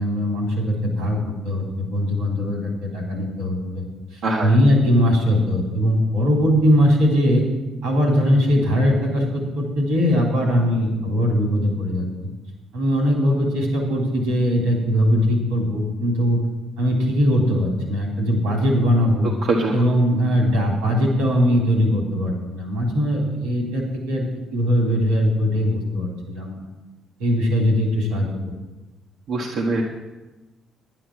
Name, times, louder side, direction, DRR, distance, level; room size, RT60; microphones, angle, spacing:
voice 1, 0.0-3.8 4.1-7.5 7.8-12.1 12.7-16.4 16.8-19.3 19.7-24.2 24.5-26.6 27.2-28.3, equal, 85° right, -1 dB, 3.4 m, -20 dB
voice 2, 29.3-29.8, right 3 dB, 65° right, -2 dB, 1.6 m, -22 dB
10.5 x 10.0 x 6.2 m, 1.1 s
hypercardioid pair, 50°, 0 cm